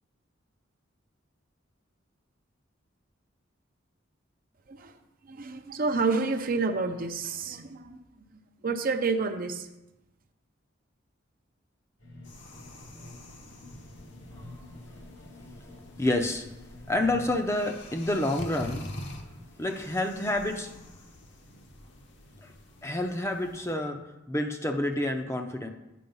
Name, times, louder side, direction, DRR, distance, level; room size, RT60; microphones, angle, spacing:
voice 1, 5.2-8.0 8.6-9.7, right 4 dB, 45° right, 7 dB, 0.6 m, -29 dB
sound 1, 12.0-21.0, left 1 dB, 85° left, 3.1 m, -49 dB
sound 2, 12.2-23.8, left 1 dB, 60° left, 1.0 m, -46 dB
voice 2, 16.0-16.5 16.9-18.9 19.6-20.7 22.4-22.5 22.8-24.0 24.3-25.7, left 1 dB, 15° left, 4 dB, 0.5 m, -28 dB
9.2 x 4.8 x 5.4 m, 0.94 s
head